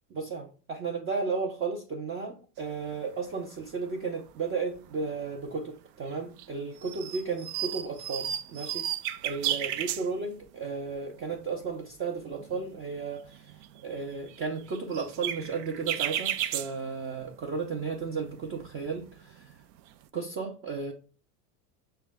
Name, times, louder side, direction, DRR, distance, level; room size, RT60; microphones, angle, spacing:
voice 1, 0.1-8.9 9.2-13.5 13.8-19.5 20.1-20.9, right 4 dB, 30° right, 0 dB, 0.6 m, -34 dB
sound 1, 2.9-3.0 3.3-3.9 4.2-5.5 6.1-6.5 6.8-10.5 10.9-11.0 11.2-11.7 12.1-17.5 17.8-20.0, right 11 dB, 80° right, 0.5 m, -35 dB
5.8 x 2.2 x 3.5 m, 0.37 s
supercardioid pair, 120°, 47 cm